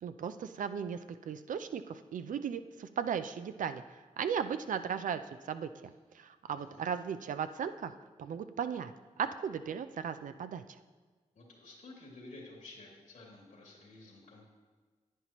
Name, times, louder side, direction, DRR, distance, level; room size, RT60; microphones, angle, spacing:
voice 1, 0.0-10.6, right 7 dB, 75° right, 10 dB, 0.5 m, -37 dB
voice 2, 6.5-6.8 11.3-14.5, left 2 dB, 80° left, -2 dB, 2.7 m, -52 dB
10.0 x 9.4 x 3.0 m, 1.4 s
cardioid pair, 45°, 14 cm